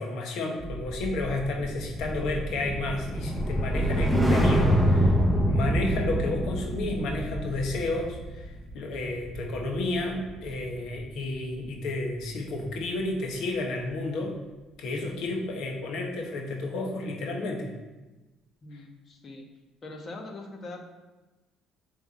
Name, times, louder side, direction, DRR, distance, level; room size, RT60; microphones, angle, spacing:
voice 1, 0.0-5.2 5.5-14.3 14.8-17.7 18.7-18.8, left 2 dB, 70° left, 1 dB, 1.3 m, -31 dB
sound 1, 0.6-11.0 11.3-11.7, equal, ahead, 0.8 m, -27 dB
voice 2, 18.6-19.5 19.8-20.8, left 2 dB, 40° left, 3 dB, 1.2 m, -42 dB
7.1 x 3.5 x 4.2 m, 1.1 s
supercardioid pair, 85°, 0 cm